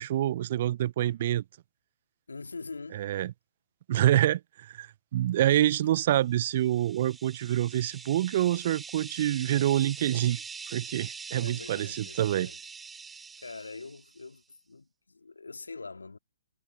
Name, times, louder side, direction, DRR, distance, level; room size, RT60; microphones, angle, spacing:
voice 1, 0.0-1.4 2.9-3.3 3.9-10.4 10.7-12.5, right 13 dB, 45° right, 0.5 m, -26 dB
voice 2, 2.3-3.0 11.4-12.6 13.4-16.2, left 4 dB, 80° left, 2.5 m, -43 dB
sound 1, 6.4-14.2, right 5 dB, 10° right, 3.6 m, -44 dB
figure-of-eight pair, 125°, 0 cm